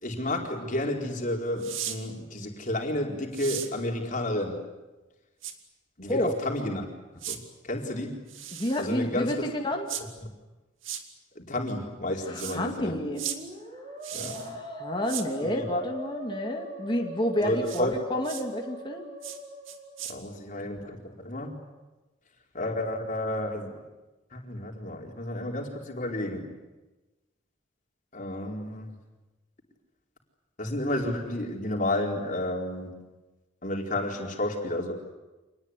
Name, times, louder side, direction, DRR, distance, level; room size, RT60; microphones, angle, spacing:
voice 1, 0.0-4.6 6.0-6.9 7.3-8.2 8.8-9.4 10.2-10.3 11.4-13.0 14.1-14.4 15.4-15.7 17.4-17.9 20.1-21.5 22.5-23.8 24.3-26.5 28.1-28.9 30.6-32.9 33.6-34.9, left 1 dB, 40° left, 1 dB, 4.5 m, -31 dB
sound 1, 1.6-2.0 3.3-3.7 5.4-5.5 7.2-7.4 8.3-8.9 9.9-10.0 10.8-11.0 12.3-12.6 13.2-13.4 14.0-14.5 15.1-15.3 17.6-17.8 18.2-18.4 19.2-19.4 19.7-20.1, right 10 dB, 80° right, 2.3 m, -36 dB
voice 2, 8.5-9.9 12.3-13.2 14.3-19.0, left 1 dB, 25° left, 1 dB, 2.4 m, -30 dB
Musical instrument, 12.1-20.1, equal, 40° right, 6.0 m, -41 dB
27.0 x 20.0 x 9.9 m, 1.1 s
head